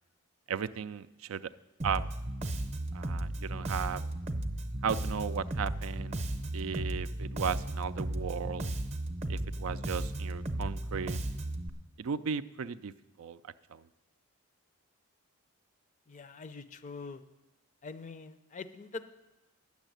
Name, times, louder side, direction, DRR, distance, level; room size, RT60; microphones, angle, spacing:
voice 1, 0.5-1.5 1.8-2.1 2.9-4.0 4.8-6.2 6.5-8.7 9.3-11.2 12.0-12.9 13.2-13.8, right 6 dB, 60° right, 14 dB, 0.4 m, -36 dB
Bass guitar, 1.8-11.7, right 1 dB, 30° right, 0.7 m, -35 dB
voice 2, 16.1-17.2 17.8-19.1, left 4 dB, 35° left, 12 dB, 0.5 m, -44 dB
9.8 x 7.3 x 9.1 m, 1.0 s
head